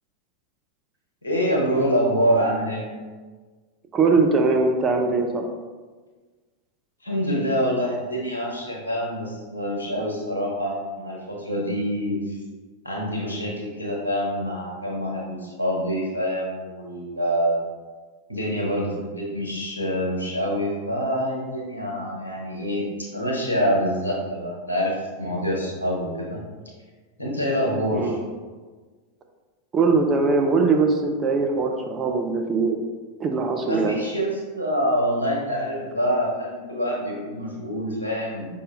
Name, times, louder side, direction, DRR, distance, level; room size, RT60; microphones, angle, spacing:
voice 1, 1.2-2.8 7.0-12.4 12.8-17.6 18.3-22.8 23.1-26.4 27.2-28.2 33.6-38.6, equal, 80° left, -3 dB, 1.1 m, -26 dB
voice 2, 3.9-5.5 27.9-28.2 29.7-32.8 33.2-34.0, right 4 dB, 25° right, 4 dB, 0.5 m, -21 dB
5.4 x 2.7 x 3.3 m, 1.4 s
figure-of-eight pair, 90°, 0 cm